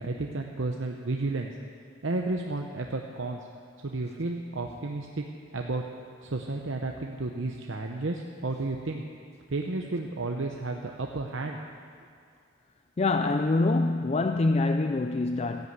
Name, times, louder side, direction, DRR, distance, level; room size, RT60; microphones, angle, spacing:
voice 1, 0.0-1.5 2.0-3.4 3.8-5.2 5.5-5.8 6.2-9.0 9.5-11.6, right 2 dB, 65° right, 2 dB, 0.9 m, -32 dB
voice 2, 13.0-15.7, left 2 dB, 30° left, 8 dB, 0.4 m, -25 dB
14.5 x 11.0 x 8.0 m, 2.2 s
head